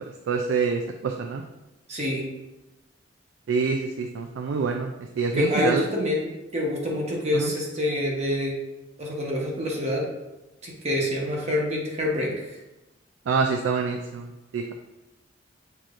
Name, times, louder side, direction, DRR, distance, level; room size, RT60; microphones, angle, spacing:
voice 1, 0.3-1.4 3.5-5.8 7.3-7.5 13.3-14.7, right 5 dB, 75° right, 4 dB, 0.3 m, -26 dB
voice 2, 1.9-2.2 5.3-6.2 6.5-8.5 9.0-10.0 10.6-12.6, left 1 dB, 35° right, -2 dB, 0.9 m, -26 dB
6.6 x 2.9 x 2.5 m, 1.0 s
head